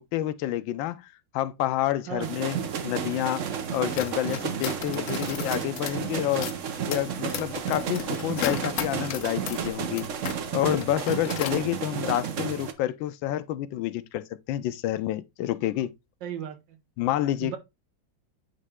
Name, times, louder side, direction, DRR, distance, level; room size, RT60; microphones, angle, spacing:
voice 1, 0.0-2.6 2.8-3.4 3.7-6.5 6.9-10.1 10.5-15.9 17.0-17.6, left 13 dB, 90° left, 1.3 m, -28 dB
voice 2, 2.1-2.4 16.2-16.8 17.4-17.6, right 9 dB, 75° right, 1.7 m, -36 dB
sound 1, 2.2-12.7, right 7 dB, 55° right, 0.9 m, -32 dB
sound 2, 3.8-10.4 10.7-11.6, left 9 dB, 70° left, 0.7 m, -36 dB
9.5 x 3.2 x 3.5 m
omnidirectional pair, 2.0 m